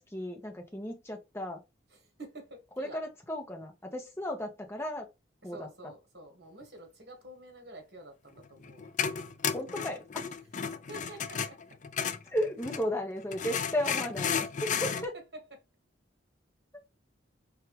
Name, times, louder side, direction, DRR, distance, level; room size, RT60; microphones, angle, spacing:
voice 1, 0.0-1.6 2.8-5.1 5.4-5.7 9.5-10.2 12.3-15.1, equal, 15° left, 1.0 m, -35 dB
voice 2, 1.9-3.0 5.5-8.9 10.9-11.6, right 1 dB, 55° right, 1.7 m, -49 dB
sound 1, 8.4-12.9 13.3-15.1, left 7 dB, 40° left, 0.4 m, -33 dB
4.6 x 3.3 x 3.1 m
head